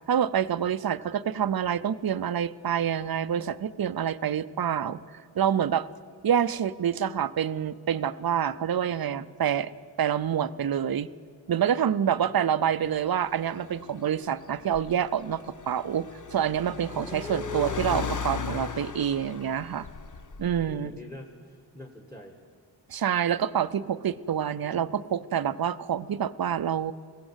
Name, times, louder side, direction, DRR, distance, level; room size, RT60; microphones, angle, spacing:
voice 1, 0.1-5.9 6.2-9.7 10.0-11.1 11.5-19.9 20.4-20.9 22.9-26.9, right 9 dB, 50° right, 14 dB, 0.6 m, -27 dB
voice 2, 12.0-12.8 16.9-18.2 20.7-22.4, left 2 dB, 5° left, 4 dB, 1.6 m, -41 dB
Car, 12.9-20.8, left 5 dB, 40° left, 0.9 m, -38 dB
21.0 x 16.5 x 8.1 m, 2.1 s
wide cardioid pair, 90°, 46 cm